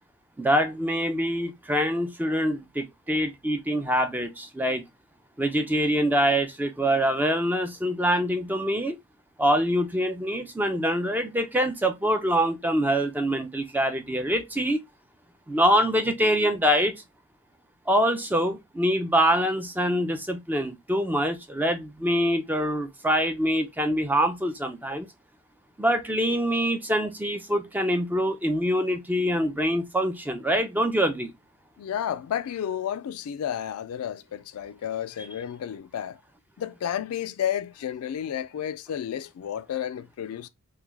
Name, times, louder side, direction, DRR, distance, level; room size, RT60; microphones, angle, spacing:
voice 1, 0.4-4.8 5.4-9.0 9.4-14.8 15.5-17.0 17.9-25.1 25.8-31.3, equal, 10° right, 0.4 m, -25 dB
voice 2, 31.8-36.2 36.6-40.5, left 9 dB, 80° left, 0.3 m, -31 dB
3.1 x 2.2 x 3.4 m
head